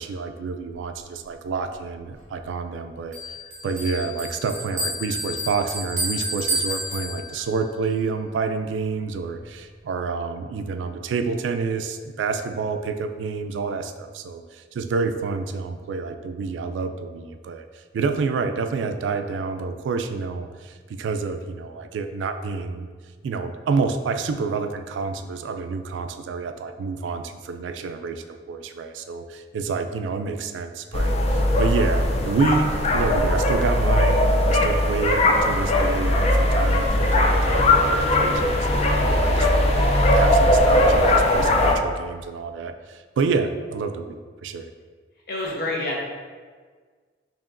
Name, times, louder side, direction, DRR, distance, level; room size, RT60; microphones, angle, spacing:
voice 1, 0.0-3.2 3.6-22.9 23.2-34.2 34.5-39.8 40.1-44.7, right 4 dB, 85° right, 8 dB, 0.3 m, -28 dB
Bell, 3.1-7.6, equal, 45° right, 1.1 m, -30 dB
sound 1, 30.9-41.7, left 1 dB, 35° left, 0.3 m, -19 dB
voice 2, 45.3-46.0, left 2 dB, 55° left, -2 dB, 0.8 m, -27 dB
4.7 x 2.9 x 2.5 m, 1.6 s
head